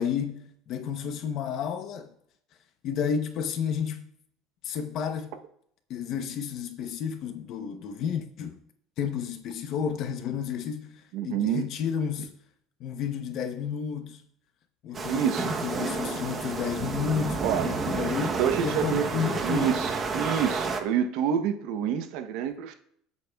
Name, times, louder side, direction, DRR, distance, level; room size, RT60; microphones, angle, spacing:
voice 1, 0.0-2.1 2.8-4.1 4.6-5.4 5.9-8.6 9.0-12.3 12.8-14.2 14.8-19.8, left 7 dB, 45° left, 0.7 m, -31 dB
voice 2, 11.1-11.7 15.1-15.5 17.4-17.8 18.4-19.1 19.4-22.7, right 9 dB, 65° right, 0.8 m, -27 dB
sound 1, 14.9-20.8, right 4 dB, 20° right, 0.8 m, -30 dB
21.5 x 8.2 x 2.3 m
cardioid pair, 170°, 0 cm